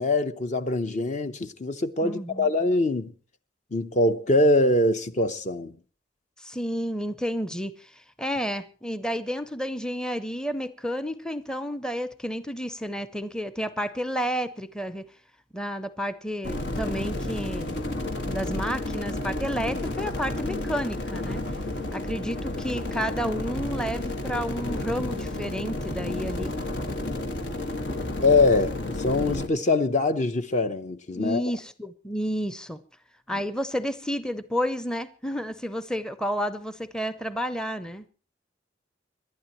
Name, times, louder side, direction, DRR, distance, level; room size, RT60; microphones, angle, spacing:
voice 1, 0.0-3.1 3.7-5.8 28.2-31.4, left 2 dB, 45° left, 0.8 m, -23 dB
voice 2, 2.0-2.5 6.4-15.1 15.5-17.8 18.3-21.4 21.9-26.5 31.1-32.8 33.3-38.1, equal, 5° left, 0.6 m, -31 dB
sound 1, 16.4-29.5, left 1 dB, 80° left, 1.8 m, -31 dB
26.5 x 11.5 x 3.1 m
head